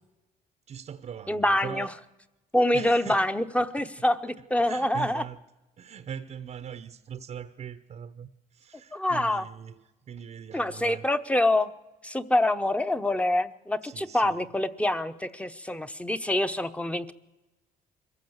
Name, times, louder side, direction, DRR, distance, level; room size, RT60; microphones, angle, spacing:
voice 1, 0.7-1.9 2.7-3.3 4.6-5.4 5.8-11.1 13.8-14.4, right 8 dB, 40° right, 0.8 m, -41 dB
voice 2, 1.3-1.9 2.5-5.2 8.9-9.4 10.5-11.7 12.0-17.1, left 1 dB, 5° left, 0.9 m, -26 dB
22.5 x 14.5 x 8.0 m
cardioid pair, 110°, 17 cm